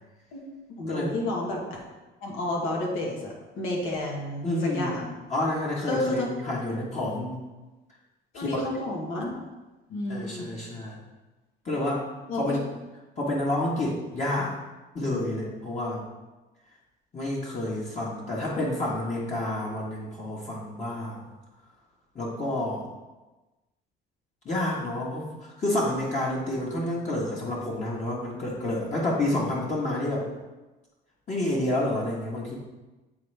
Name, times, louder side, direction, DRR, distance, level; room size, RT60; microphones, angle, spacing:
voice 1, 0.7-1.8 2.2-5.2 5.9-6.3 8.3-9.3 9.9-10.5 12.3-12.6, left 1 dB, 90° left, -1 dB, 1.5 m, -31 dB
voice 2, 4.4-4.9 5.3-7.4 8.3-8.6 10.1-11.0 11.6-12.0 12.4-12.6 13.2-14.5 14.9-16.0 17.1-21.2 22.1-22.8 24.4-30.3 31.3-32.6, left 1 dB, 35° left, -5 dB, 1.4 m, -29 dB
8.0 x 3.9 x 3.4 m, 1.1 s
cardioid pair, 110°, 20 cm